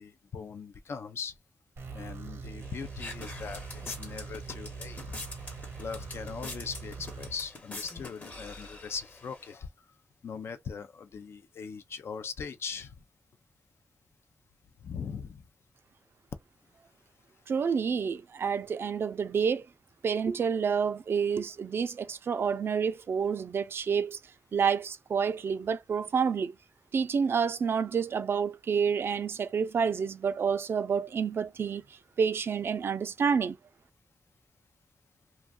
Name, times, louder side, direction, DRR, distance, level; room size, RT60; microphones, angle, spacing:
voice 1, 0.0-1.3 1.9-5.2 5.8-9.7 10.2-12.9 14.8-15.4, left 6 dB, 70° left, 0.4 m, -40 dB
sound 1, 1.8-7.3, right 5 dB, 80° right, 0.8 m, -42 dB
sound 2, 2.6-9.5, left 2 dB, 40° left, 0.9 m, -45 dB
voice 2, 17.5-19.6 20.0-24.2 24.5-26.5 26.9-31.8 32.2-33.6, right 6 dB, 60° right, 0.4 m, -28 dB
2.7 x 2.3 x 2.2 m
wide cardioid pair, 110°, 4 cm